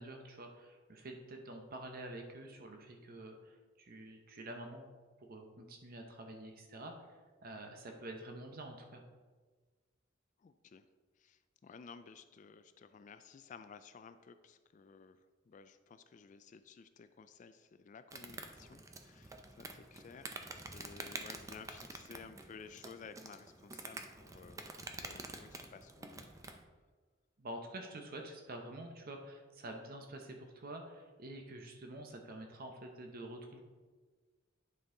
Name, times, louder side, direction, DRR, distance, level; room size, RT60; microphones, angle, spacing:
voice 1, 0.0-4.8 5.2-9.0 27.4-33.6, right 1 dB, 50° right, 3 dB, 0.8 m, -48 dB
voice 2, 10.4-10.9 11.2-26.3, left 5 dB, 40° left, 11 dB, 0.3 m, -55 dB
Insect, 18.1-26.6, right 2 dB, 15° right, 0.5 m, -48 dB
9.5 x 5.3 x 3.8 m, 1.4 s
head